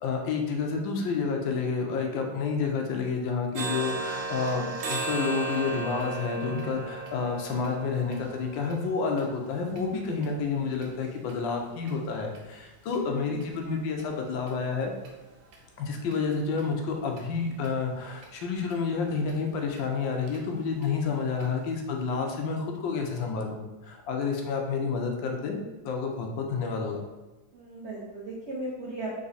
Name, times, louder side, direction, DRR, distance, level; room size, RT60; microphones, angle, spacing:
voice 1, 0.0-14.9 15.8-25.6 25.8-27.0, left 5 dB, 85° left, 2 dB, 1.4 m, -29 dB
sound 1, 3.6-11.4 11.8-11.9 12.4-12.5 12.9-13.0 13.4-13.5 14.0-14.1 14.5-14.6 15.0-15.1 15.5-15.6 16.1-16.2 16.6-16.7 17.2-17.3 17.6-17.7 18.2-18.3 18.7-18.8 19.3-19.4 19.8-19.9 20.3-20.4 20.8-20.9 21.4-21.5, right 3 dB, 75° right, 1.5 m, -36 dB
voice 2, 13.1-13.4 27.5-29.1, right 2 dB, 55° right, -5 dB, 0.8 m, -37 dB
4.0 x 3.1 x 4.0 m, 1.1 s
omnidirectional pair, 2.0 m